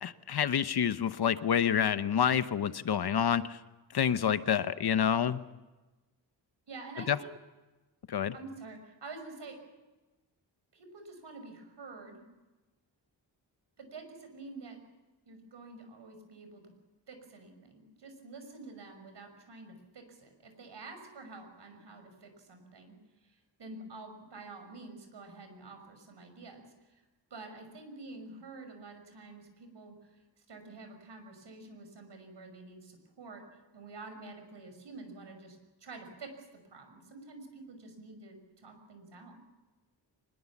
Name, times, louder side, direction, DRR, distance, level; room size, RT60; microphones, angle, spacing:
voice 1, 0.0-3.6 3.9-5.4 7.1-7.2 8.1-8.3, left 8 dB, 60° left, 12 dB, 0.9 m, -28 dB
voice 2, 6.7-7.3 8.3-9.6 10.7-12.2 13.8-14.8 15.3-16.7 17.1-23.0 23.2-27.0 27.3-33.5 33.7-39.4, right 3 dB, 70° right, 6 dB, 6.0 m, -48 dB
24.5 x 21.5 x 7.3 m, 1.1 s
wide cardioid pair, 155°, 43 cm